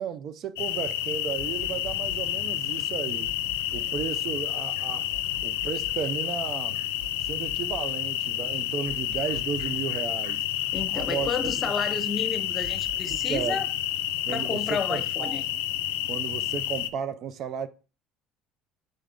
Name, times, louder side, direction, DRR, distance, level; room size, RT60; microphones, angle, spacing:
voice 1, 0.0-3.3 3.7-5.1 5.4-6.8 7.2-10.4 10.9-11.5 13.1-13.6 14.3-15.4 16.1-17.7, right 8 dB, 55° right, 0.6 m, -34 dB
sound 1, 0.5-16.8, left 2 dB, 85° right, 3.1 m, -48 dB
sound 2, 0.6-16.9, left 12 dB, 85° left, 0.5 m, -30 dB
voice 2, 10.7-13.7 14.3-15.4, left 5 dB, 35° left, 1.1 m, -31 dB
7.5 x 3.7 x 3.4 m
supercardioid pair, 80°, 0 cm